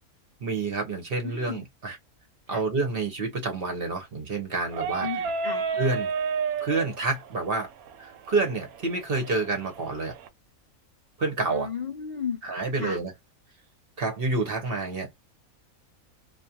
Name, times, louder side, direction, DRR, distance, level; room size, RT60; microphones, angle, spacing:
voice 1, 0.4-2.0 2.5-5.1 5.8-6.1 6.6-7.7 8.0-10.1 11.2-11.7 12.4-13.1 14.0-15.1, right 3 dB, 50° right, 0.8 m, -28 dB
voice 2, 1.2-1.6 2.5-2.6 5.0-5.8 11.5-12.4 12.8-13.0, left 6 dB, 80° left, 0.4 m, -34 dB
sound 1, 4.7-10.3, right 5 dB, 85° right, 1.1 m, -32 dB
2.4 x 2.3 x 2.7 m
omnidirectional pair, 1.5 m